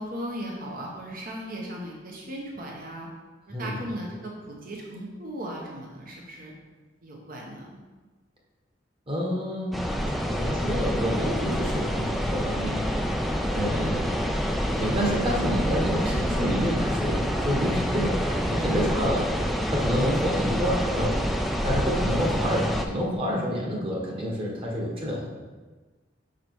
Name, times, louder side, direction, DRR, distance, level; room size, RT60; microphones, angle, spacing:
voice 1, 0.0-3.1 3.5-6.5 7.0-7.8 13.2-13.6, equal, 50° right, -2 dB, 1.1 m, -37 dB
voice 2, 9.1-9.8 10.4-12.8 13.5-14.0 14.8-19.4 19.7-21.3 21.6-25.3, equal, 30° right, -2 dB, 1.4 m, -28 dB
sound 1, 9.7-22.9, equal, ahead, 0.4 m, -27 dB
5.7 x 4.9 x 4.6 m, 1.3 s
head